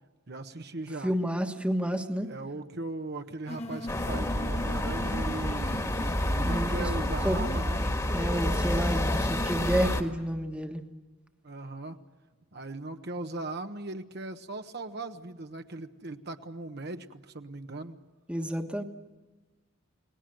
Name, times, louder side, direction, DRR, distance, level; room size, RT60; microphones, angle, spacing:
voice 1, 0.3-1.1 2.2-5.8 6.2-7.8 11.4-12.0 12.5-18.0, right 2 dB, 50° right, 6 dB, 1.2 m, -38 dB
voice 2, 1.0-2.3 6.4-6.9 7.2-7.4 8.1-10.8 18.3-18.8, equal, 5° right, 5 dB, 1.4 m, -30 dB
sound 1, 3.5-9.8, left 1 dB, 30° left, 1.5 m, -39 dB
sound 2, 3.9-10.0, left 1 dB, 15° left, 1.8 m, -29 dB
29.5 x 19.5 x 7.8 m, 1.2 s
head